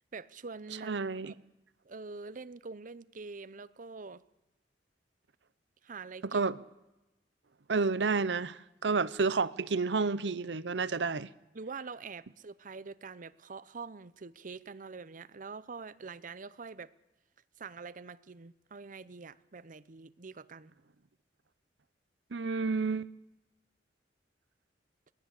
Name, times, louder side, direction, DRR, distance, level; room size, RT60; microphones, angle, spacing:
voice 1, 0.1-1.4 1.8-4.2 5.8-6.4 11.5-16.9 17.6-20.7, right 4 dB, 50° right, 0.7 m, -45 dB
voice 2, 0.9-1.3 6.3-6.6 7.7-11.3 22.3-23.1, right 4 dB, 85° right, 0.8 m, -30 dB
23.0 x 18.5 x 8.3 m
head